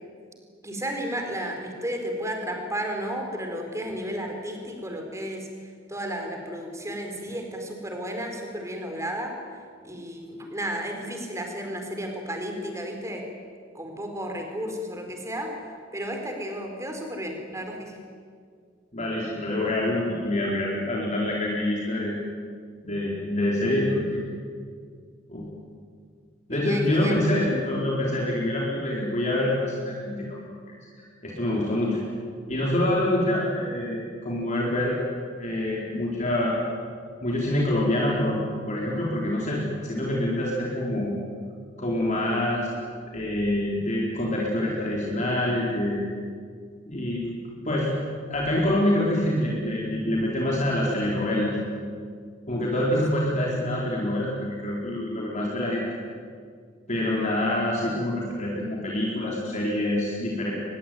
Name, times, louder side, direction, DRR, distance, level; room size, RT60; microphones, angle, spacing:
voice 1, 0.6-9.3 9.8-13.2 13.7-15.5 15.9-18.0 26.5-27.2, equal, 15° right, 3 dB, 4.5 m, -33 dB
voice 2, 18.9-22.2 22.8-24.2 25.3-25.5 26.5-30.4 30.7-30.8 31.2-32.0 32.5-35.0 35.4-36.6 37.2-41.1 41.8-42.7 43.1-46.1 46.9-47.3 47.6-47.9 48.3-51.5 52.5-55.9 56.9-60.5, left 1 dB, 40° left, -4 dB, 4.3 m, -26 dB
24.5 x 21.0 x 9.4 m, 2.1 s
head